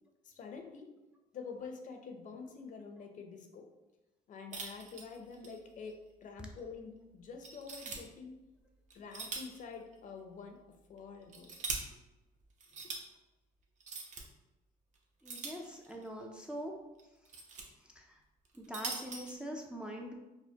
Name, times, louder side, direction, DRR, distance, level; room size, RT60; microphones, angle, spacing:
voice 1, 0.2-0.9 1.3-3.7 4.3-8.4 8.9-11.5, left 5 dB, 50° left, 4 dB, 0.5 m, -47 dB
sound 1, 4.5-5.6 5.9-6.0 6.6-6.7 7.4-8.0 8.9-9.6 9.9-10.0 11.0-11.8 12.6-13.0 13.8-14.2 15.2-16.1 17.0-17.6 18.4-19.3, right 4 dB, 45° right, 0.7 m, -42 dB
voice 2, 15.2-16.7 17.9-18.2 18.5-20.1, equal, 5° right, 0 dB, 0.4 m, -43 dB
4.2 x 2.1 x 2.8 m, 1.1 s
cardioid pair, 110°, 17 cm